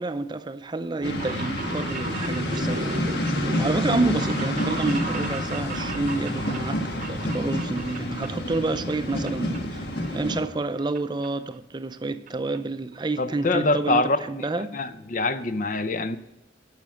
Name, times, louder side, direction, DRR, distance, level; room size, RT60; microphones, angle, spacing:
voice 1, 0.0-3.0 3.6-14.8, right 2 dB, 25° right, 0.5 m, -29 dB
sound 1, 0.9-8.6 8.9-9.6 9.9-11.0 11.2-11.3 12.3-12.4 12.5-12.6 12.9-13.0 13.3-13.6 14.0-14.1 14.2-14.3, right 3 dB, 45° right, 0.8 m, -36 dB
sound 2, 1.0-10.4, left 1 dB, 60° left, 1.5 m, -28 dB
voice 2, 13.2-14.5 14.7-16.2, left 2 dB, 45° left, 0.6 m, -25 dB
12.0 x 5.9 x 7.7 m
head